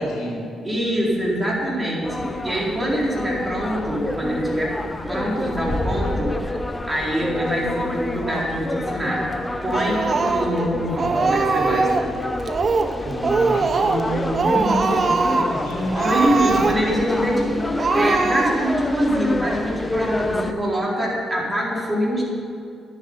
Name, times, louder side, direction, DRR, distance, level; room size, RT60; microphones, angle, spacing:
voice 1, 0.0-0.6 13.0-16.6, equal, 90° left, -2 dB, 3.6 m, -29 dB
voice 2, 0.6-4.7 5.1-9.3 9.6-12.1 16.0-22.2, equal, 20° right, -4 dB, 4.2 m, -24 dB
sound 1, 2.0-20.5, left 1 dB, 15° left, 0.9 m, -28 dB
Speech, 9.7-10.7 11.0-12.1 12.5-13.0 13.2-14.1 14.3-15.5 15.9-17.0 17.4-17.5 17.8-18.8, right 4 dB, 45° right, 1.0 m, -22 dB
11.0 x 7.8 x 9.9 m, 2.5 s
cardioid pair, 90°, 0 cm